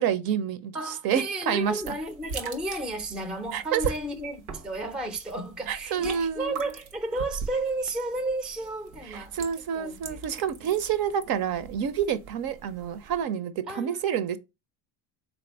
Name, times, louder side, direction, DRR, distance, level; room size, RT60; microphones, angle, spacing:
voice 1, 0.0-1.9 3.5-3.8 5.7-6.6 9.0-14.4, right 8 dB, 50° right, 0.6 m, -28 dB
voice 2, 0.7-9.3 9.7-10.7 13.7-14.1, right 2 dB, ahead, 0.4 m, -33 dB
sound 1, 1.6-13.2, right 4 dB, 85° right, 1.1 m, -42 dB
3.6 x 2.6 x 4.4 m
supercardioid pair, 105°, 47 cm